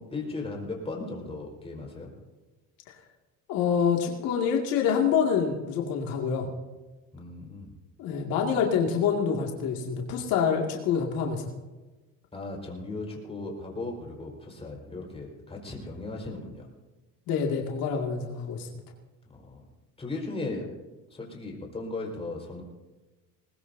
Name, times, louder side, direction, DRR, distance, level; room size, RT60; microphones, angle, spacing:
voice 1, 0.0-2.1 7.1-7.7 12.3-16.7 19.3-19.6 20.0-20.7 21.1-22.6, left 2 dB, 15° left, -1 dB, 4.7 m, -37 dB
voice 2, 3.5-6.5 8.0-11.5 17.3-18.7, left 7 dB, 80° left, 0 dB, 2.3 m, -26 dB
20.5 x 20.5 x 2.7 m, 1.2 s
cardioid pair, 125°, 35 cm